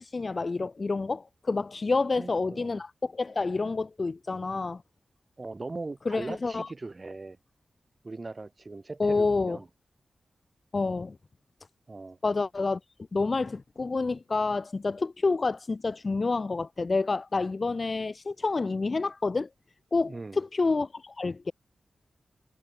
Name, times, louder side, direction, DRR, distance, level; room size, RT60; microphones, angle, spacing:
voice 1, 0.0-4.8 6.1-6.7 9.0-9.6 10.7-11.2 12.2-12.8 13.1-19.5 19.9-21.5, left 3 dB, 35° left, 0.4 m, -28 dB
voice 2, 2.2-2.8 5.4-7.4 8.0-9.7 11.9-12.2 20.0-20.4, right 3 dB, 30° right, 2.2 m, -40 dB
wide cardioid pair, 135°, 0 cm